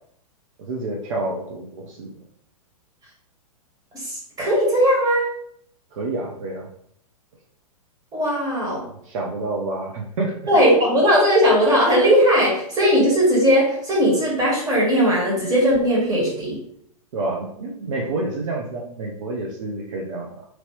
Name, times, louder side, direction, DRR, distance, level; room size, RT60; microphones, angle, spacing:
voice 1, 0.6-2.1 5.9-6.7 8.6-10.4 17.1-20.4, right 2 dB, 60° right, -1 dB, 0.7 m, -29 dB
voice 2, 3.9-5.3 8.1-8.8 10.5-16.6, equal, 20° right, -4 dB, 1.5 m, -18 dB
3.0 x 2.8 x 3.0 m, 0.68 s
hypercardioid pair, 115°, 19 cm